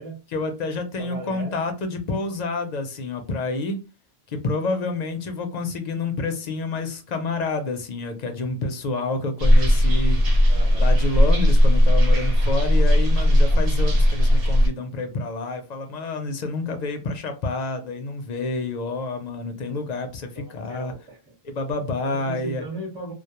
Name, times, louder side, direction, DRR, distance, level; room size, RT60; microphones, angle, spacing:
voice 1, 0.3-3.8 4.3-10.2 10.8-20.9 21.4-22.6, left 3 dB, 55° left, 0.5 m, -28 dB
voice 2, 1.0-1.6 10.5-10.9 20.3-21.2 22.0-23.1, right 2 dB, 20° right, 0.9 m, -37 dB
sound 1, 9.4-14.7, equal, 70° right, 0.9 m, -17 dB
2.2 x 2.1 x 2.8 m
omnidirectional pair, 1.0 m